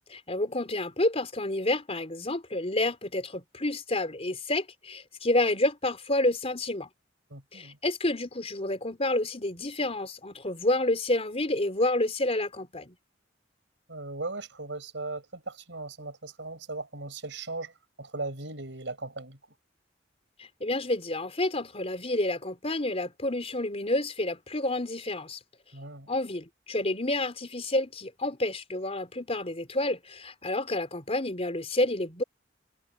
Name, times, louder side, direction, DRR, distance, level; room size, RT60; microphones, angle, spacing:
voice 1, 0.1-6.9 7.5-13.0 20.4-25.4 26.1-32.2, left 1 dB, 35° left, 4.1 m, -29 dB
voice 2, 7.3-7.8 13.9-17.7 18.0-19.4 25.7-26.1, right 3 dB, 70° right, 5.8 m, -38 dB
head